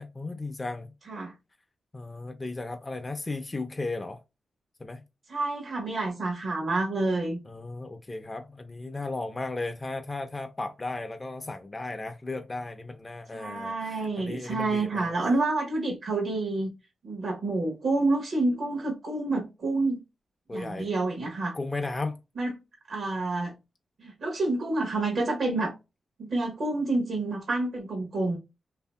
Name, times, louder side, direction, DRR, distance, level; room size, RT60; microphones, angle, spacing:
voice 1, 0.0-0.9 1.9-4.2 4.8-5.0 7.5-15.1 20.5-20.9 21.5-22.2, left 2 dB, 25° left, 0.4 m, -35 dB
voice 2, 5.3-7.4 13.3-16.7 17.0-20.0 20.5-21.5 22.4-22.5 22.9-23.6 24.0-25.7 26.2-28.4, right 2 dB, 75° right, 0.9 m, -28 dB
2.7 x 2.6 x 2.2 m
cardioid pair, 65°, 0 cm